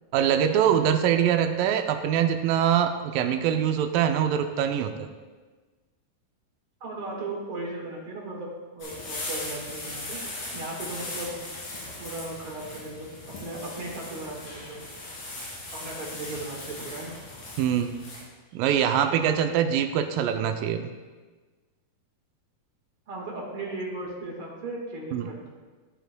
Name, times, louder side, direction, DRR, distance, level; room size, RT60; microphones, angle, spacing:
voice 1, 0.1-5.1 17.6-18.0 18.5-20.9 25.1-25.3, right 9 dB, 80° right, 7 dB, 2.0 m, -23 dB
voice 2, 6.8-8.5 8.7-10.2 10.5-11.4 12.0-14.8 15.7-17.2 20.3-20.4 23.1-25.5, right 2 dB, 50° right, -2 dB, 1.6 m, -36 dB
sound 1, 8.8-18.2, left 2 dB, 60° left, 4.3 m, -38 dB
15.5 x 7.8 x 2.2 m, 1.3 s
omnidirectional pair, 4.4 m